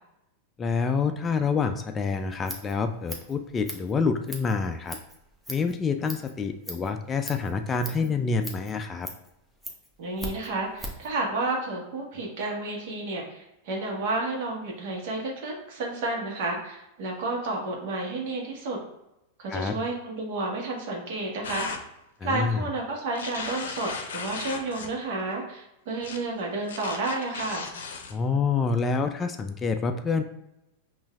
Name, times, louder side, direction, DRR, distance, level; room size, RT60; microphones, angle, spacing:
voice 1, 0.6-5.0 5.5-9.1 19.5-19.8 22.2-22.6 28.1-30.2, left 5 dB, 20° left, 7 dB, 0.3 m, -27 dB
Scissors, 2.2-11.1, equal, 5° right, 0.8 m, -41 dB
voice 2, 10.0-18.8 19.4-21.7 22.2-27.7, right 2 dB, 60° right, 0 dB, 1.1 m, -31 dB
sound 1, 21.4-21.8 23.1-24.9 26.0-26.2 26.7-28.1, left 5 dB, 75° left, 0.6 m, -36 dB
5.5 x 2.6 x 2.3 m, 0.88 s
hypercardioid pair, 100°, 0 cm